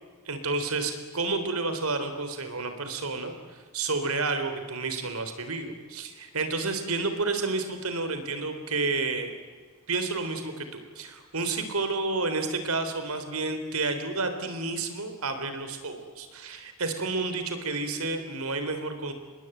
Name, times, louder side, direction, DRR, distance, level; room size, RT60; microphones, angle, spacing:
voice 1, 0.3-9.3 9.9-19.1, right 3 dB, 80° right, 8 dB, 3.8 m, -30 dB
27.0 x 21.5 x 9.2 m, 1.5 s
head